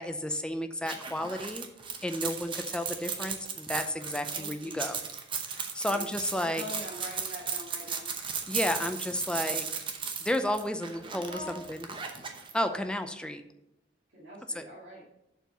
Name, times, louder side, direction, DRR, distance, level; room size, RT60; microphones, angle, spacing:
voice 1, 0.0-1.7 2.0-5.0 5.5-6.6 8.5-9.7 10.2-11.3 11.7-11.9 12.5-13.4 14.5-14.6, left 1 dB, 5° left, 7 dB, 0.5 m, -32 dB
sound 1, 0.8-12.5, right 6 dB, 25° right, 0.8 m, -36 dB
voice 2, 4.3-4.9 5.9-8.1 11.3-11.6 14.1-15.1, left 1 dB, 75° right, -7 dB, 2.2 m, -43 dB
6.8 x 4.5 x 6.7 m, 0.86 s
head